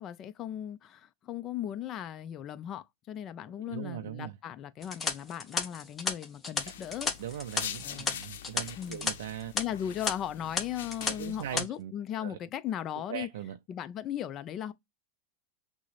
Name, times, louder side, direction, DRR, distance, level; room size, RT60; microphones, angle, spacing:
voice 1, 0.0-7.1 7.8-8.2 8.8-9.1 9.5-13.3 13.7-14.7, left 10 dB, 30° left, 0.5 m, -37 dB
voice 2, 3.7-4.4 7.2-9.5 11.1-11.9 12.2-12.4 13.1-13.6, right 11 dB, 80° right, 0.4 m, -40 dB
sound 1, 4.8-9.1 9.4-9.6 10.1-10.2 10.6-11.1 11.4-11.6, left 4 dB, 15° left, 0.9 m, -32 dB
sound 2, 6.6-11.6, left 10 dB, 90° left, 0.6 m, -44 dB
6.1 x 2.1 x 3.2 m
supercardioid pair, 150°, 0 cm